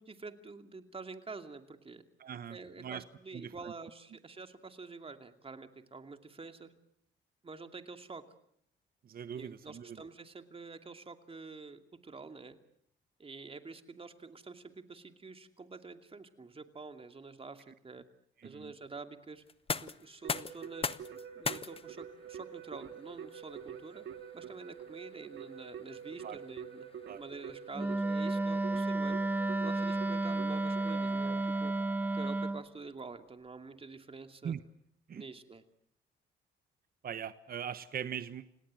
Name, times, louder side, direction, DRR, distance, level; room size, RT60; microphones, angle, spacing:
voice 1, 0.0-2.0 2.5-6.7 7.4-8.2 9.3-12.6 13.2-18.0 18.4-19.4 19.7-21.0 21.3-24.1 24.3-29.2 29.6-31.7 32.1-34.6 35.1-35.6, right 4 dB, 30° right, 8 dB, 2.5 m, -48 dB
voice 2, 2.2-3.0 3.3-3.7 9.0-10.0 18.4-18.7 26.2-26.4 27.1-27.2 34.4-34.6 35.1-35.2 37.0-38.6, right 8 dB, 50° right, 13 dB, 1.1 m, -41 dB
sound 1, 19.4-31.2, left 5 dB, 30° left, 0.9 m, -44 dB
Keyboard (musical), 20.2-32.7, right 8 dB, 75° right, 1.8 m, -47 dB
Wind instrument woodwind instrument, 27.7-32.6, right 2 dB, 10° right, 1.1 m, -32 dB
29.5 x 18.0 x 7.6 m, 0.70 s
cardioid pair, 90°, 20 cm